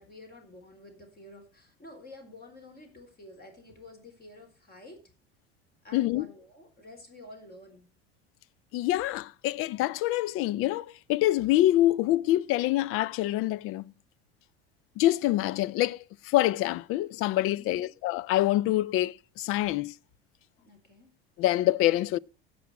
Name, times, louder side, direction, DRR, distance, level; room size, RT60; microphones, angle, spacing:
voice 1, 0.0-5.0 5.8-7.9 17.6-17.9 20.6-21.1, left 2 dB, 30° left, 4.1 m, -50 dB
voice 2, 5.9-6.3 8.7-13.8 15.0-19.9 21.4-22.2, left 15 dB, 45° left, 0.5 m, -26 dB
16.0 x 6.2 x 4.6 m
hypercardioid pair, 75°, 30 cm